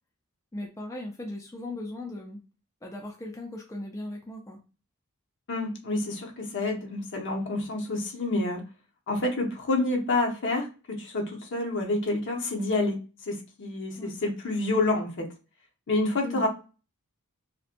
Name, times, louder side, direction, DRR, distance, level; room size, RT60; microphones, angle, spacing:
voice 1, 0.5-2.4 2.8-4.6 13.9-14.2 16.2-16.5, left 1 dB, 15° left, 0 dB, 0.3 m, -38 dB
voice 2, 5.5-8.6 9.1-13.0 13.2-15.3 15.9-16.5, left 2 dB, 60° left, 2 dB, 0.7 m, -28 dB
2.6 x 2.1 x 2.4 m, 0.33 s
head